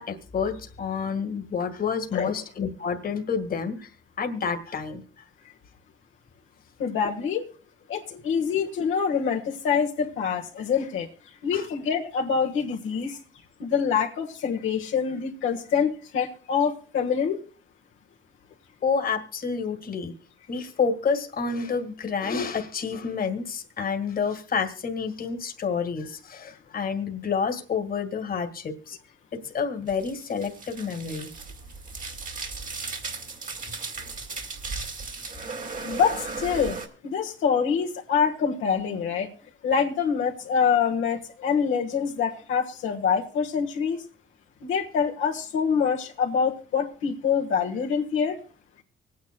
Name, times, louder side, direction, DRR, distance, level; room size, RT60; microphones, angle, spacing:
voice 1, 0.0-5.3 8.1-8.2 8.5-8.7 11.5-11.7 18.8-20.1 20.5-29.0 29.3-31.3, left 5 dB, 45° left, 6 dB, 1.8 m, -29 dB
voice 2, 6.8-7.4 7.9-11.1 11.4-13.2 13.6-17.4 35.8-36.8 37.0-39.3 39.6-44.0 44.6-48.4, left 6 dB, 80° left, 0 dB, 1.4 m, -25 dB
sound 1, 29.9-36.9, right 4 dB, 40° right, 2.2 m, -36 dB
24.5 x 9.4 x 2.2 m, 0.40 s
cardioid pair, 90°, 20 cm